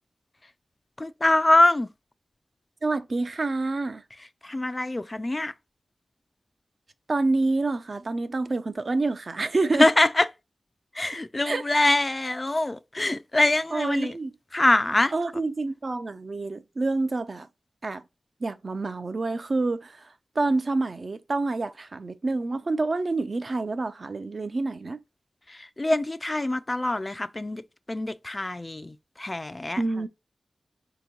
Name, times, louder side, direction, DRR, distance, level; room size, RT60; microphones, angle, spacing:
voice 1, 1.0-1.9 4.4-5.5 9.8-10.3 11.0-14.1 14.5-15.1 25.5-27.6 27.9-29.8, left 2 dB, 25° left, 0.3 m, -24 dB
voice 2, 2.8-4.0 7.1-9.9 11.4-11.6 13.7-14.3 15.1-17.5 17.8-18.0 18.4-25.0 29.8-30.1, right 3 dB, 45° right, 0.4 m, -27 dB
4.4 x 2.9 x 3.7 m
wide cardioid pair, 125°, 0 cm